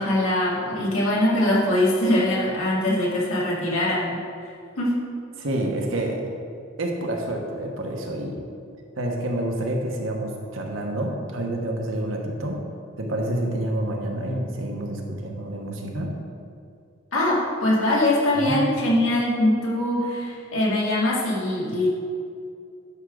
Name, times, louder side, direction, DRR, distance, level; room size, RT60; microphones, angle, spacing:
voice 1, 0.0-4.2 4.8-5.0 17.1-21.9, left 1 dB, 85° left, -5 dB, 2.1 m, -22 dB
voice 2, 5.4-6.2 6.8-8.4 9.0-12.6 13.0-16.1 18.4-18.6, right 1 dB, 75° right, 1 dB, 1.2 m, -28 dB
9.9 x 6.1 x 3.9 m, 2.4 s
head